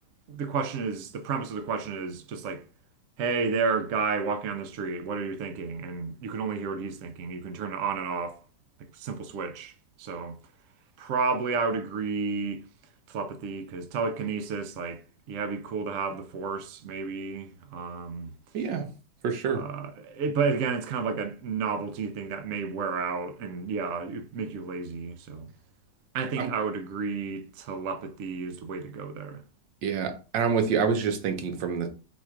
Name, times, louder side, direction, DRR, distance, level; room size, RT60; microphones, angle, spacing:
voice 1, 0.3-2.6 3.2-8.4 8.9-9.7 10.0-10.4 11.0-12.6 13.1-15.0 15.3-18.3 19.5-25.5 26.1-29.4, right 5 dB, 70° right, 0.7 m, -31 dB
voice 2, 18.5-18.8 19.2-19.6 26.4-26.5 29.8-31.9, right 6 dB, 85° right, 1.5 m, -27 dB
4.3 x 2.4 x 4.4 m
omnidirectional pair, 1.9 m